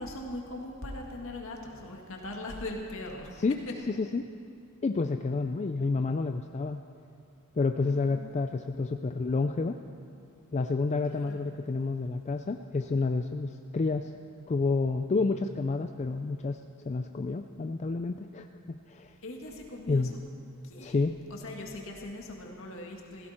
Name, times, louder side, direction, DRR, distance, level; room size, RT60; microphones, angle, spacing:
voice 1, 0.0-3.3 7.8-8.3 11.1-11.4 19.2-20.0 20.6-20.9 21.3-23.3, left 1 dB, 65° left, 1 dB, 2.1 m, -40 dB
voice 2, 3.9-4.3 4.8-6.8 7.6-9.8 10.5-14.1 14.5-18.5 18.9-19.1 19.9-20.1 20.8-21.2, left 3 dB, 30° left, 6 dB, 0.4 m, -29 dB
16.5 x 16.5 x 4.4 m, 2.6 s
head